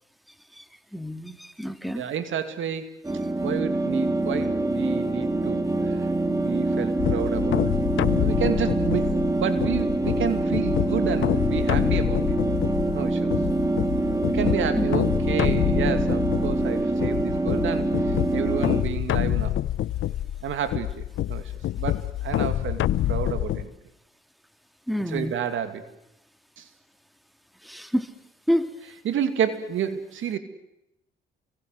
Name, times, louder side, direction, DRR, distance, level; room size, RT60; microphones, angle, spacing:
voice 1, 0.9-2.0 13.3-13.5 14.8-14.9 24.9-25.3 27.6-28.1 28.5-28.7, equal, ahead, 9 dB, 2.5 m, -28 dB
voice 2, 1.9-2.9 3.4-7.7 8.2-12.4 12.9-13.3 14.3-19.6 20.4-21.0 21.3-22.8 23.1-23.7 25.0-25.8 26.6-26.7 29.0-30.4, right 8 dB, 70° right, 9 dB, 2.6 m, -30 dB
sound 1, 3.0-18.8, right 2 dB, 15° right, 3.9 m, -25 dB
sound 2, 7.0-23.6, left 13 dB, 70° left, 1.0 m, -27 dB
29.5 x 23.5 x 8.0 m, 0.86 s
supercardioid pair, 60°, 21 cm